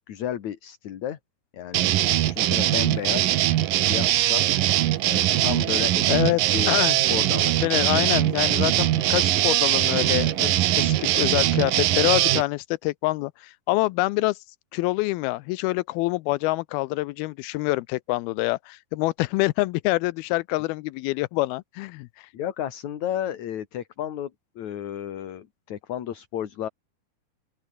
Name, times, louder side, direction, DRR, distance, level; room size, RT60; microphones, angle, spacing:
voice 1, 0.1-1.2 1.5-1.9 2.2-3.3 3.7-4.4 5.1-6.1 6.5-6.7 7.1-7.6 22.3-24.3 24.6-26.7, left 10 dB, 55° left, 2.8 m, -32 dB
sound 1, 1.7-12.4, right 14 dB, 70° right, 2.6 m, -21 dB
voice 2, 6.1-6.4 6.7-7.0 7.6-14.4 14.7-22.1, left 20 dB, 85° left, 2.4 m, -26 dB
open air
omnidirectional pair, 4.5 m